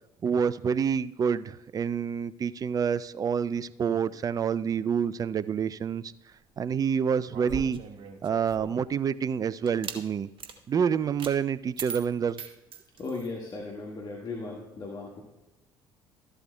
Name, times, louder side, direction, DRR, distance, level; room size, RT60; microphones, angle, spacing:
voice 1, 0.2-6.1 6.6-7.8 8.2-10.3 10.7-12.4, right 7 dB, 30° right, 17 dB, 0.4 m, -27 dB
sound 1, 7.3-8.9 9.7-10.0 10.4-10.6 11.2-11.4 11.8-13.3, right 6 dB, 45° right, 1.1 m, -40 dB
voice 2, 13.0-15.2, left 3 dB, 35° left, -2 dB, 1.7 m, -37 dB
13.5 x 11.0 x 2.2 m, 1.0 s
figure-of-eight pair, 55°, 12 cm